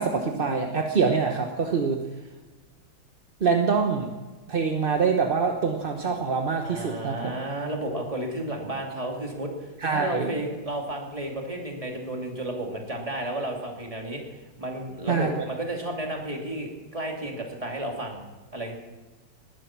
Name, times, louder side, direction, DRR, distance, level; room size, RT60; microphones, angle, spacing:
voice 1, 0.0-2.0 3.4-4.1 4.5-7.3 9.8-10.3 15.1-15.5, right 5 dB, 35° right, 3 dB, 0.9 m, -25 dB
voice 2, 6.6-18.2 18.5-18.8, right 1 dB, 15° right, 0 dB, 2.6 m, -32 dB
19.5 x 11.5 x 6.0 m, 1.3 s
omnidirectional pair, 2.2 m